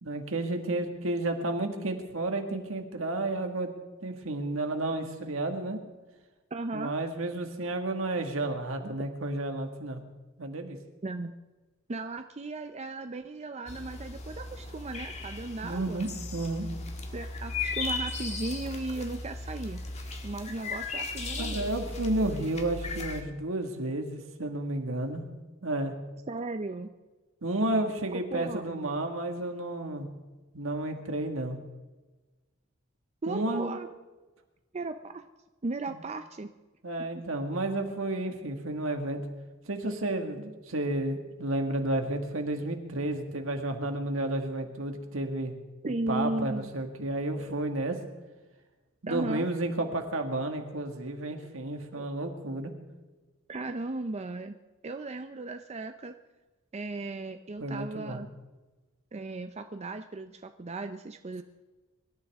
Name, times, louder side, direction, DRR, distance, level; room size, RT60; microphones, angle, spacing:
voice 1, 0.0-3.7 4.0-5.8 6.7-10.0 10.4-10.8 15.6-16.7 21.4-25.2 25.6-25.9 27.4-30.1 30.5-31.6 33.3-33.8 35.9-36.0 36.8-39.2 39.7-45.5 46.1-48.0 49.0-52.7 57.6-58.2, right 2 dB, 75° right, 4 dB, 1.9 m, -31 dB
voice 2, 6.5-6.9 11.0-11.3 11.9-16.0 17.1-19.8 20.2-21.7 26.3-26.9 28.1-29.0 33.2-33.9 34.7-35.2 35.6-36.5 45.8-46.6 49.1-49.5 51.9-52.1 53.5-54.5 54.8-56.1 56.7-58.3 59.1-61.4, right 2 dB, 30° right, 7 dB, 0.5 m, -36 dB
sound 1, 13.7-23.2, left 3 dB, 35° left, 1.7 m, -36 dB
24.0 x 13.0 x 3.6 m, 1.2 s
head